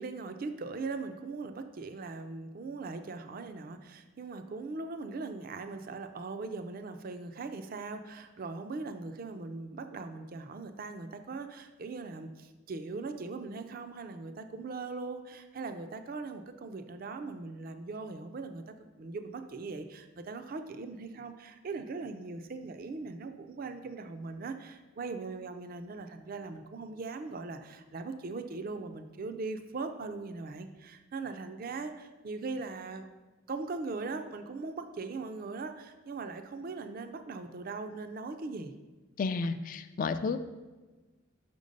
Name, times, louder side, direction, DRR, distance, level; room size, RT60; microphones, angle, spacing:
voice 1, 0.0-33.1 33.5-38.7, right 3 dB, 45° right, 8 dB, 0.4 m, -40 dB
voice 2, 39.2-40.4, left 4 dB, 40° left, 11 dB, 0.3 m, -31 dB
5.7 x 5.2 x 5.2 m, 1.2 s
head